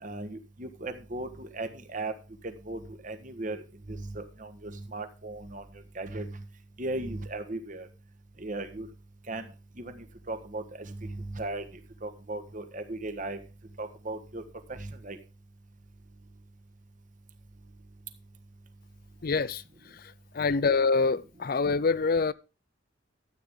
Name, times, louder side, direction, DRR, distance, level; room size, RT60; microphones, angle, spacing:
voice 1, 0.0-2.1 2.4-3.6 3.9-5.6 5.9-6.4 6.8-7.9 8.4-8.9 9.3-9.4 9.8-11.6 12.0-13.4 13.8-14.4 14.7-15.2, right 2 dB, 40° right, 1.4 m, -37 dB
voice 2, 19.2-22.3, left 4 dB, 45° left, 0.5 m, -26 dB
13.0 x 8.7 x 3.7 m
head